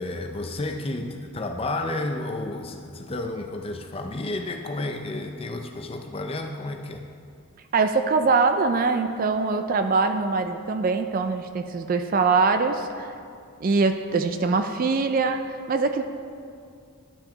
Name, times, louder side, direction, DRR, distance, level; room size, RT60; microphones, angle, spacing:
voice 1, 0.0-7.0, left 2 dB, 25° left, 5 dB, 0.5 m, -31 dB
voice 2, 7.7-13.1 13.6-15.4 15.7-16.0, right 4 dB, 40° right, 8 dB, 0.3 m, -23 dB
11.5 x 5.9 x 3.9 m, 2.3 s
head